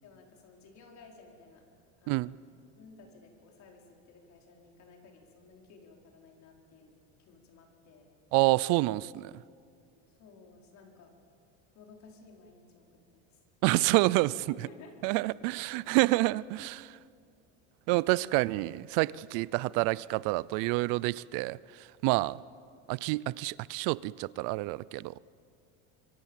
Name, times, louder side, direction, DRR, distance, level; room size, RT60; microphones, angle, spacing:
voice 1, 0.0-1.6 2.0-2.4 2.8-6.9 7.2-8.1 10.1-11.1 11.8-13.4 14.5-15.0 15.4-15.5, left 4 dB, 50° left, 5.1 m, -55 dB
voice 2, 8.3-9.3 13.6-14.5 15.0-17.0 17.9-22.4 22.9-25.1, right 21 dB, 65° right, 0.5 m, -28 dB
25.0 x 25.0 x 7.5 m
cardioid pair, 135°, 35 cm